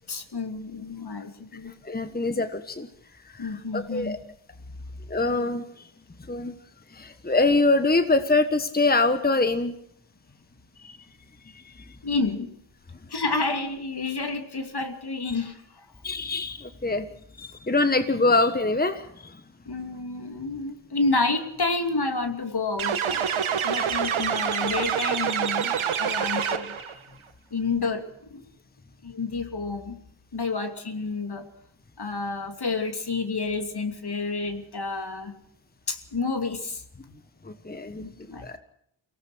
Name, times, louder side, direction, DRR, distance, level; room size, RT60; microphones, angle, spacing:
voice 1, 0.1-1.7 3.4-4.2 10.8-11.0 12.0-12.5 13.1-15.9 19.7-23.2 23.6-26.9 27.5-28.4 29.0-30.0 30.3-31.5 32.0-35.3 35.9-36.8 37.1-37.2 38.0-38.6, left 3 dB, 50° left, 6 dB, 2.8 m, -30 dB
voice 2, 1.6-2.9 3.3-4.2 5.1-5.9 6.3-6.5 6.9-9.7 11.5-11.8 15.3-15.4 16.0-17.1 17.4-19.4 37.4-38.0 38.4-38.6, left 3 dB, 20° left, 9 dB, 1.4 m, -24 dB
sound 1, 22.8-26.9, right 8 dB, 75° right, 1.6 m, -26 dB
23.5 x 18.0 x 6.3 m, 0.71 s
cardioid pair, 40°, 48 cm